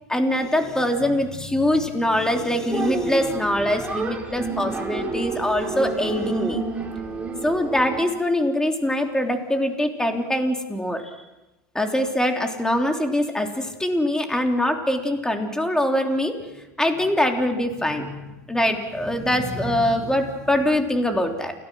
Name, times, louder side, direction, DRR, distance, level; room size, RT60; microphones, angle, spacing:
voice 1, 0.1-6.6 7.4-11.0 11.7-16.3 16.8-21.5, left 1 dB, 5° left, 4 dB, 3.3 m, -23 dB
sound 1, 2.7-8.0, right 4 dB, 15° right, 4.5 m, -29 dB
29.0 x 17.5 x 6.3 m, 1.0 s
hypercardioid pair, 100°, 9 cm